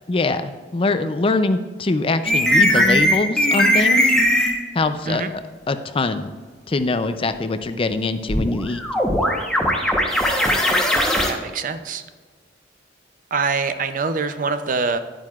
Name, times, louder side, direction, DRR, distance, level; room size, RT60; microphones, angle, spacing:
voice 1, 0.1-4.1 4.7-5.4 5.7-6.3 6.7-8.8, left 3 dB, 30° left, 10 dB, 0.4 m, -23 dB
sound 1, 2.3-4.6 8.3-11.3, equal, 5° left, 1.0 m, -18 dB
voice 2, 11.3-12.0 13.3-15.0, right 4 dB, 50° right, 10 dB, 0.5 m, -24 dB
10.5 x 9.0 x 2.4 m, 1.5 s
head